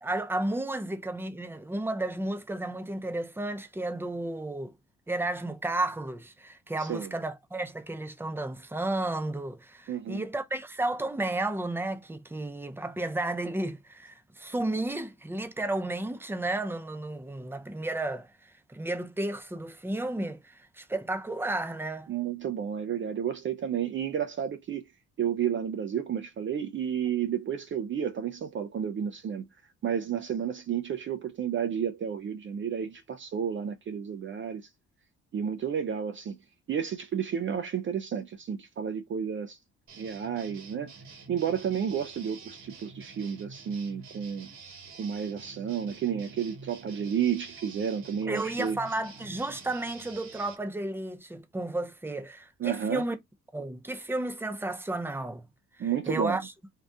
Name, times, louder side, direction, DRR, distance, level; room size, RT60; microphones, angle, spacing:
voice 1, 0.0-4.7 5.1-18.3 18.7-22.1 48.3-53.2 53.5-55.5 55.8-56.5, right 2 dB, 5° right, 0.7 m, -32 dB
voice 2, 6.8-7.1 9.9-10.2 22.1-24.9 25.2-29.5 29.8-34.7 35.3-36.4 36.7-39.6 40.0-40.9 41.3-44.5 45.0-48.8 52.6-53.1 55.8-56.4, right 8 dB, 40° right, 0.5 m, -31 dB
sound 1, 39.9-50.6, right 4 dB, 65° right, 1.2 m, -48 dB
2.7 x 2.4 x 3.4 m
cardioid pair, 90°, 30 cm